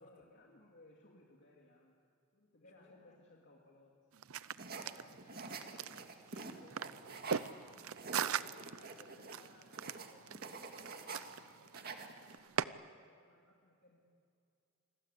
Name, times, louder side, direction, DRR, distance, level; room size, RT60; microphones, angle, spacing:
voice 1, 0.0-2.0 2.3-4.0 8.2-14.2, left 2 dB, 55° left, -2 dB, 2.8 m, -63 dB
voice 2, 2.6-3.2 4.7-6.0 6.3-8.0 8.5-8.7, left 2 dB, 35° left, 3 dB, 4.5 m, -65 dB
sound 1, 4.1-12.6, right 7 dB, 75° right, 0.6 m, -41 dB
sound 2, 4.6-7.5 7.8-11.4 11.7-12.4, right 4 dB, 45° right, 2.1 m, -48 dB
28.5 x 21.5 x 8.4 m, 2.4 s
head